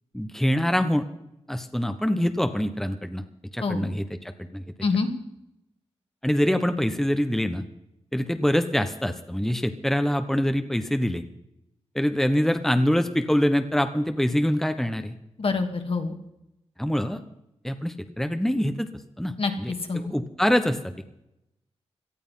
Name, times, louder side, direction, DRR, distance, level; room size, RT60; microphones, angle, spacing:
voice 1, 0.1-1.1 1.5-3.2 3.5-4.1 4.4-4.6 6.2-7.6 8.1-11.2 11.9-15.1 16.8-17.2 17.6-18.9 19.2-19.7 20.1-21.1, equal, 5° left, 8 dB, 1.2 m, -24 dB
voice 2, 4.8-5.1 15.4-16.1 19.4-19.5 19.9-20.1, left 4 dB, 55° left, 5 dB, 2.5 m, -25 dB
18.0 x 12.0 x 5.7 m, 0.86 s
cardioid pair, 60°, 11 cm